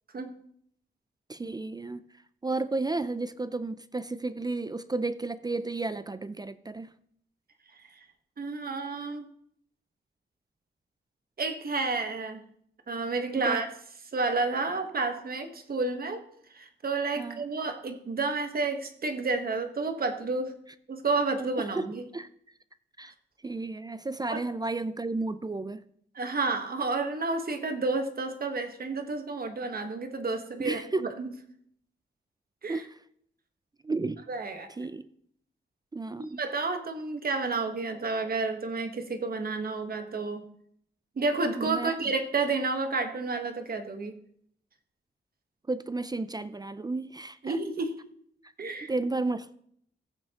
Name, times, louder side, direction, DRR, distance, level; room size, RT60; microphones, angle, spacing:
voice 1, 1.3-2.0 2.4-6.9 13.4-13.6 17.2-17.4 21.6-22.3 23.0-23.1 23.4-25.8 30.6-31.1 32.7-33.0 33.8-34.2 34.8-35.0 35.9-36.4 41.6-41.9 45.7-47.6 48.9-49.5, right 3 dB, 20° right, 0.4 m, -32 dB
voice 2, 8.4-9.3 11.4-12.4 12.9-13.7 14.1-16.2 16.5-20.5 20.9-22.0 24.3-24.4 26.1-31.3 32.6-32.8 34.3-34.7 36.2-40.4 41.2-44.1 47.4-47.9 48.6-48.9, right 3 dB, 50° right, 1.2 m, -30 dB
15.0 x 7.9 x 2.9 m
wide cardioid pair, 95°, 19 cm